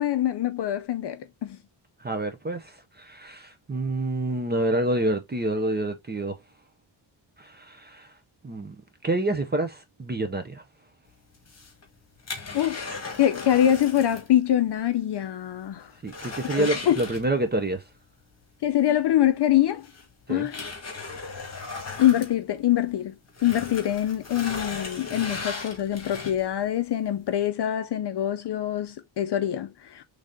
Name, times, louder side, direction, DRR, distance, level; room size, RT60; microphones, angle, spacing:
voice 1, 0.0-1.6 12.5-15.9 16.5-17.0 18.6-19.9 20.3-20.6 22.0-23.1 23.4-30.0, left 11 dB, 60° left, 0.5 m, -24 dB
voice 2, 2.0-6.3 7.4-8.1 8.4-8.8 9.0-10.6 16.0-17.8 20.3-20.5, right 2 dB, 20° right, 0.5 m, -28 dB
sound 1, 11.3-14.3 14.6-14.7 15.2-15.3 15.6-17.7 19.1-19.2 19.8-22.9 23.3-26.6 27.1-27.2, left 4 dB, 30° left, 1.6 m, -37 dB
3.9 x 3.3 x 3.5 m
wide cardioid pair, 180°, 48 cm